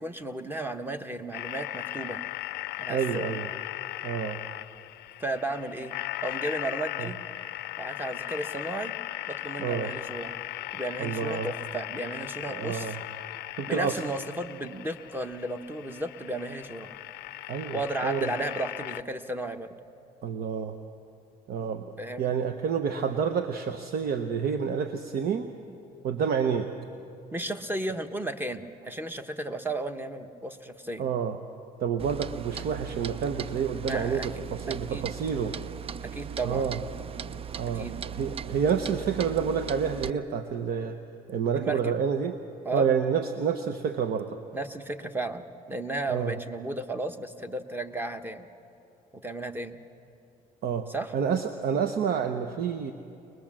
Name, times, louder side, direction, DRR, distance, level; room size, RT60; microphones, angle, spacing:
voice 1, 0.0-2.2 2.8-3.3 5.2-5.9 6.2-7.2 7.8-8.9 9.3-10.3 10.7-13.0 13.7-17.0 17.7-19.7 22.0-22.3 27.3-31.1 33.8-34.3 34.7-35.1 36.0-36.7 37.7-38.1 41.5-42.0 42.6-42.9 44.5-48.5 49.1-49.8 50.9-51.1, right 2 dB, 10° right, 8 dB, 1.1 m, -34 dB
sound 1, 1.3-19.0, left 16 dB, 75° left, 0.5 m, -38 dB
voice 2, 2.9-3.5 4.0-4.4 7.0-7.1 9.6-9.9 11.0-11.5 12.5-13.0 13.6-13.9 17.5-18.3 20.2-20.8 21.5-21.9 22.2-25.5 26.0-26.7 31.0-31.4 31.8-35.6 36.4-36.8 37.6-41.0 41.3-42.4 42.7-44.4 46.1-46.4 50.6-50.9 51.1-52.9, right 7 dB, 65° right, 8 dB, 1.0 m, -28 dB
Clock, 32.0-40.1, right 8 dB, 35° right, 0.4 m, -38 dB
22.5 x 20.5 x 7.5 m, 2.6 s
cardioid pair, 110°, 17 cm